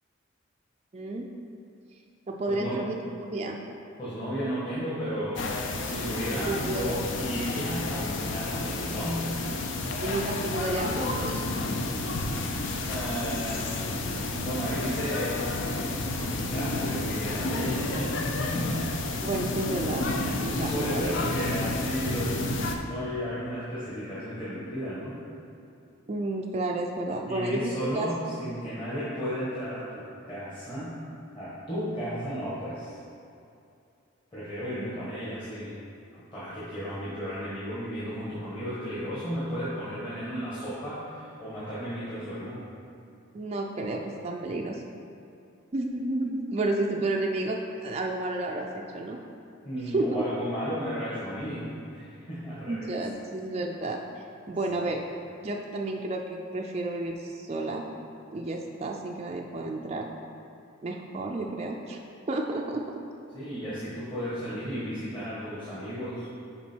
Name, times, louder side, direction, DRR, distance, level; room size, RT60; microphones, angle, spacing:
voice 1, 0.9-1.3 2.3-3.6 6.3-7.0 10.0-11.4 19.2-20.1 20.4-21.4 26.1-28.3 34.8-34.9 43.3-44.8 45.7-49.2 49.9-50.2 52.7-54.0 54.5-55.0 55.4-57.9 58.3-60.1 60.8-62.0 62.3-62.8, right 2 dB, 30° right, 0 dB, 0.4 m, -31 dB
voice 2, 2.5-2.8 4.0-9.4 12.7-13.7 14.4-15.4 16.2-18.9 20.2-25.2 27.3-30.9 31.3-33.0 34.3-35.8 36.3-42.6 49.6-51.7 51.9-52.9 54.7-54.8 63.3-66.3, equal, 25° left, -11 dB, 1.4 m, -34 dB
sound 1, 5.4-22.8, left 2 dB, 60° left, 0.6 m, -31 dB
7.1 x 5.2 x 4.5 m, 2.6 s
head